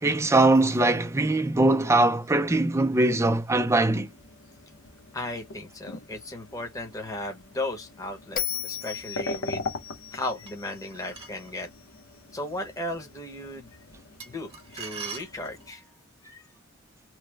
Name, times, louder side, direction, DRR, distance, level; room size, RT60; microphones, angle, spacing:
voice 1, 0.0-4.1, right 2 dB, 15° right, 0.5 m, -21 dB
sound 1, 4.0-15.7, left 3 dB, 85° left, 0.9 m, -42 dB
voice 2, 5.1-9.7 10.1-11.7 12.3-13.8 14.3-15.8 16.2-16.4, left 1 dB, 15° left, 0.9 m, -36 dB
Bell, 8.4-11.6, left 9 dB, 40° left, 0.6 m, -36 dB
sound 2, 10.5-11.5 14.2-15.9, right 5 dB, 30° right, 0.9 m, -41 dB
3.2 x 2.1 x 3.3 m
head